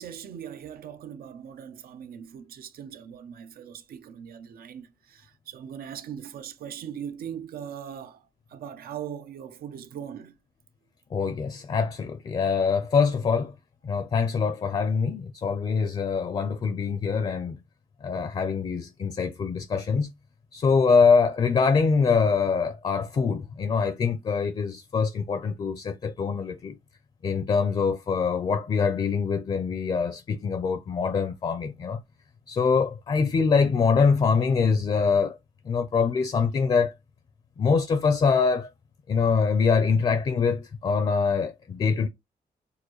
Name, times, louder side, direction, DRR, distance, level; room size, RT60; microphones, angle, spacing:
voice 1, 0.0-8.2 8.5-10.3, right 8 dB, 90° right, 0.7 m, -40 dB
voice 2, 11.1-13.5 13.8-17.6 18.0-20.1 20.5-26.8 27.2-32.0 32.5-35.4 35.6-36.9 37.6-38.7 39.1-42.1, left 5 dB, 35° left, 0.5 m, -24 dB
6.5 x 2.5 x 3.0 m
wide cardioid pair, 160°, 15 cm